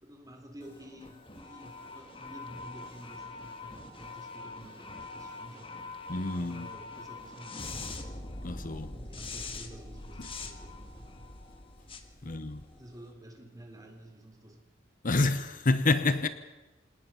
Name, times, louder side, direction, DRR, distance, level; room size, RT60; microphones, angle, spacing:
voice 1, 0.0-5.8 6.3-8.1 8.9-11.3 12.2-12.5 12.7-14.6, right 1 dB, 20° right, 3.7 m, -50 dB
sound 1, 0.6-13.0, left 3 dB, 30° left, 1.8 m, -44 dB
voice 2, 6.1-6.7 8.4-8.9 10.2-10.3 12.2-12.6 15.0-16.3, left 3 dB, 45° left, 0.9 m, -28 dB
27.5 x 19.0 x 5.7 m
head